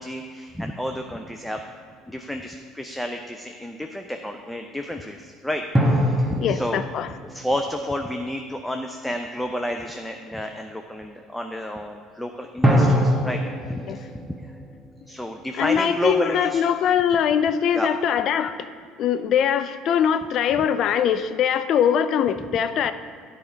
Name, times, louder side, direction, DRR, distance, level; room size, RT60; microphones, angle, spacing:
voice 1, 0.0-1.6 2.1-6.9 7.2-14.5 15.1-16.6 17.7-17.9 20.6-20.7, equal, 5° left, 4 dB, 0.6 m, -31 dB
sound 1, 1.4-2.1 5.7-8.6 12.6-15.9, equal, 10° right, 1.3 m, -24 dB
voice 2, 6.4-7.1 13.9-14.0 15.6-18.5 19.0-22.9, left 8 dB, 55° left, 11 dB, 0.4 m, -22 dB
10.5 x 5.0 x 4.5 m, 2.1 s
figure-of-eight pair, 60°, 0 cm